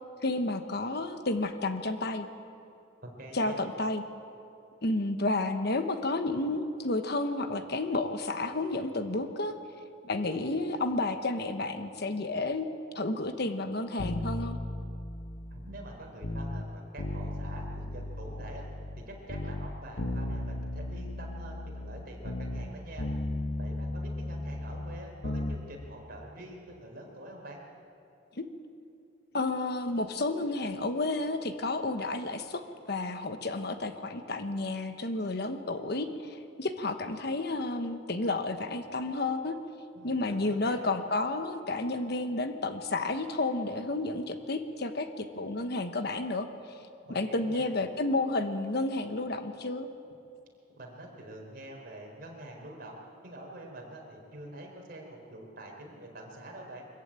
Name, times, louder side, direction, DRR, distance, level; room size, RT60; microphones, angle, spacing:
voice 1, 0.2-2.3 3.3-4.0 4.8-9.5 10.0-12.7 12.9-14.6 28.4-28.5 29.3-32.6 32.9-39.6 40.0-46.5 47.1-49.9, left 2 dB, 55° left, 8 dB, 1.1 m, -31 dB
voice 2, 3.0-3.6 15.5-18.7 19.1-23.1 23.6-27.6 39.9-40.8 47.0-47.7 50.7-53.0 53.2-56.8, right 1 dB, 50° right, 0 dB, 4.5 m, -46 dB
sound 1, 14.0-16.7 17.0-19.0 19.3-22.7 23.0-25.6 25.9-26.0, left 1 dB, 80° left, 1.4 m, -36 dB
24.0 x 14.5 x 8.9 m, 2.7 s
head